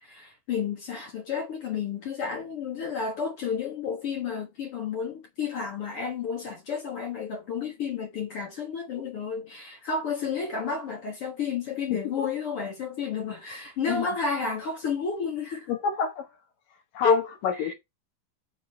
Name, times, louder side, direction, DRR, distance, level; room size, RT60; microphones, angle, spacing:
voice 1, 0.0-15.7 17.0-17.2 17.6-17.7, left 5 dB, 55° left, 1.8 m, -31 dB
voice 2, 11.9-12.3 13.9-14.1 15.7-16.3 16.9-17.7, left 7 dB, 75° left, 3.1 m, -28 dB
7.2 x 3.9 x 5.8 m
omnidirectional pair, 4.1 m